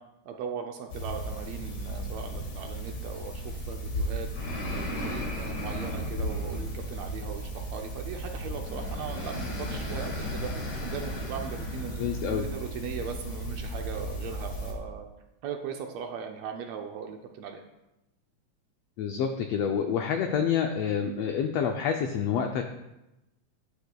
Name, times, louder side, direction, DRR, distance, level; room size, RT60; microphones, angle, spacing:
voice 1, 0.0-15.1 15.4-17.6, right 6 dB, 75° right, 3 dB, 1.6 m, -39 dB
sound 1, 0.9-14.7, equal, 45° left, 1.5 m, -34 dB
voice 2, 12.0-12.5 19.0-22.6, left 7 dB, 85° left, 5 dB, 1.4 m, -28 dB
9.7 x 9.2 x 2.3 m, 0.95 s
omnidirectional pair, 3.4 m